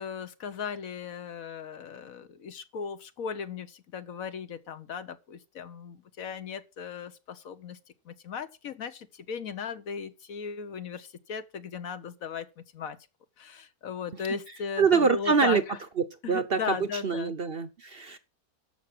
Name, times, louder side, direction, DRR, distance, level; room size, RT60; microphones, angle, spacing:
voice 1, 0.0-7.8 8.0-13.0 13.4-15.8 16.2-17.4, left 6 dB, 65° left, 1.3 m, -37 dB
voice 2, 14.8-15.6 16.0-16.8 17.0-18.2, right 5 dB, 45° right, 0.9 m, -25 dB
13.5 x 6.0 x 5.9 m
omnidirectional pair, 1.6 m